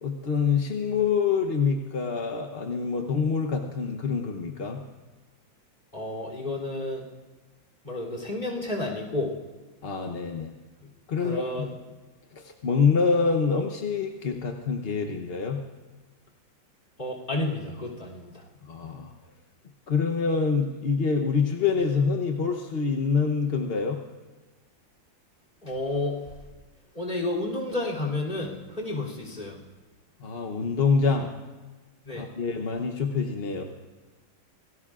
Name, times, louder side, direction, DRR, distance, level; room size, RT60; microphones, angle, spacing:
voice 1, 0.0-4.8 9.8-10.5 11.1-11.5 12.3-15.6 18.7-19.1 19.9-24.0 30.2-31.3 32.1-33.6, left 5 dB, 45° left, 3 dB, 0.9 m, -26 dB
voice 2, 5.9-7.0 7.8-9.3 11.2-11.7 17.0-18.4 25.6-26.2 26.9-29.6 32.0-32.3, left 2 dB, 25° left, 1 dB, 3.2 m, -31 dB
27.0 x 19.0 x 2.5 m, 1.3 s
omnidirectional pair, 2.0 m